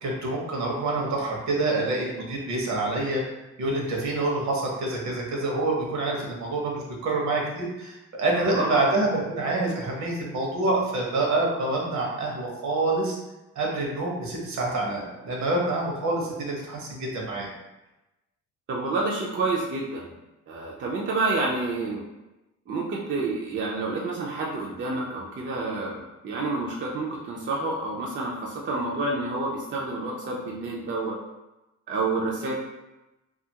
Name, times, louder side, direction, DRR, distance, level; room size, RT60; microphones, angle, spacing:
voice 1, 0.0-3.2 3.6-13.2 13.6-17.5, right 2 dB, 65° right, -2 dB, 0.8 m, -27 dB
voice 2, 8.3-8.9 18.7-20.2 20.5-22.0 22.7-31.2 31.9-32.6, right 3 dB, 40° right, -3 dB, 0.5 m, -29 dB
2.4 x 2.4 x 2.8 m, 1.0 s
cardioid pair, 90°, 30 cm